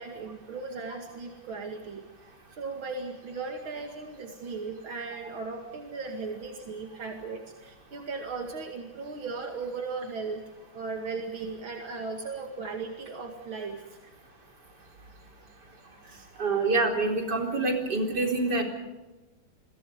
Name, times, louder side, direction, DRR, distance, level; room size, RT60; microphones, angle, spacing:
voice 1, 0.0-2.0 2.5-10.4 10.7-14.0 14.8-15.5 16.0-16.3, right 4 dB, 80° right, 3 dB, 3.0 m, -37 dB
voice 2, 16.4-18.6, right 3 dB, 55° right, 2 dB, 4.9 m, -26 dB
30.0 x 23.0 x 5.1 m, 1.1 s
omnidirectional pair, 2.2 m